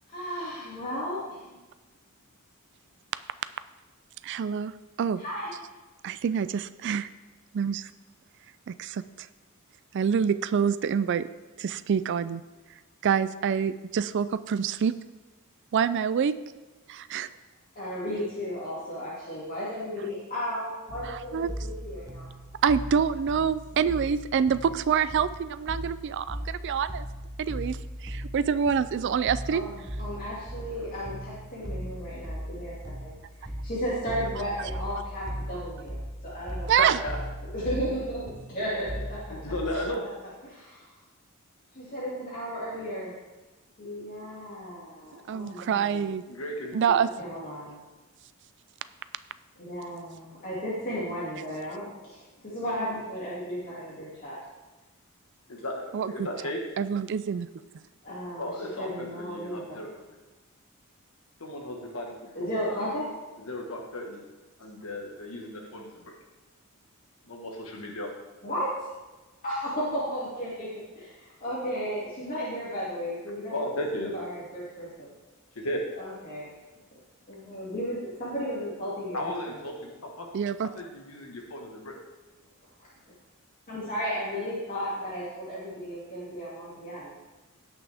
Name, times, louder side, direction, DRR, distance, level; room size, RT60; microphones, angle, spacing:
voice 1, 0.1-1.5 5.2-5.5 10.0-10.2 17.7-22.3 29.5-33.1 33.6-36.7 37.5-39.2 40.4-40.9 41.7-43.1 43.8-46.1 47.2-47.8 49.6-54.4 58.0-58.5 58.8-59.8 62.3-63.0 68.4-68.7 69.4-70.7 70.9-73.6 74.1-75.1 76.0-76.5 77.3-79.6 82.8-82.9 83.7-87.1, equal, 40° left, -8 dB, 2.4 m, -34 dB
voice 2, 4.2-4.7 5.0-5.2 6.0-7.1 7.5-7.9 8.7-9.3 9.9-11.3 11.6-12.4 13.0-14.9 15.7-16.3 16.9-17.3 21.0-21.5 22.6-27.1 27.4-29.6 36.7-37.0 45.1-46.2 46.7-47.1 55.9-56.1 56.8-57.5 80.3-80.7, right 7 dB, 55° right, 14 dB, 0.4 m, -26 dB
sound 1, 20.9-40.0, equal, 15° right, 0.8 m, -38 dB
voice 3, 36.8-37.2 39.3-40.0 46.2-46.9 55.5-56.6 58.4-59.9 61.4-62.9 63.4-64.2 64.6-66.0 67.2-68.1 73.5-74.1 75.5-75.8 79.1-80.3 80.8-81.9, left 1 dB, 75° left, 1 dB, 1.5 m, -35 dB
17.0 x 6.1 x 3.5 m, 1.2 s
head